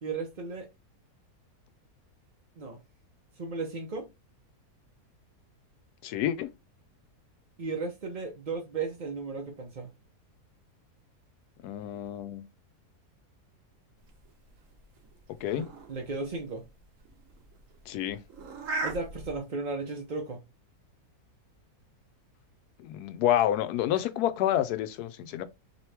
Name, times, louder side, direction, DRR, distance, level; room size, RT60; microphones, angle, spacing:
voice 1, 0.0-0.7 2.6-2.8 3.4-4.1 7.6-9.9 15.6-16.7 18.8-20.4 23.9-24.0, right 4 dB, 40° right, 0.7 m, -35 dB
voice 2, 6.0-6.5 11.6-12.4 15.4-15.7 17.9-18.2 22.8-25.4, left 11 dB, 80° left, 1.1 m, -28 dB
sound 1, 14.1-19.4, right 2 dB, 60° right, 1.2 m, -40 dB
4.8 x 3.0 x 3.3 m
omnidirectional pair, 1.7 m